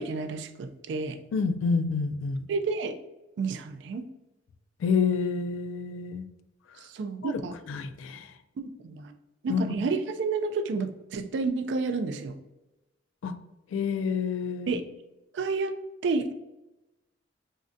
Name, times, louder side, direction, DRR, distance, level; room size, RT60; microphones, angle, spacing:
voice 1, 0.0-1.2 2.5-3.0 3.4-4.0 6.9-7.5 8.6-9.1 9.4-12.4 14.7-14.8 15.3-15.7 16.0-16.3, right 4 dB, 65° right, 8 dB, 0.3 m, -30 dB
voice 2, 1.3-2.5 4.8-6.3 7.2-7.4 7.7-8.3 9.5-9.8 13.2-13.3 13.7-14.8, left 5 dB, 90° left, 11 dB, 0.3 m, -28 dB
3.6 x 2.1 x 2.5 m, 0.98 s
head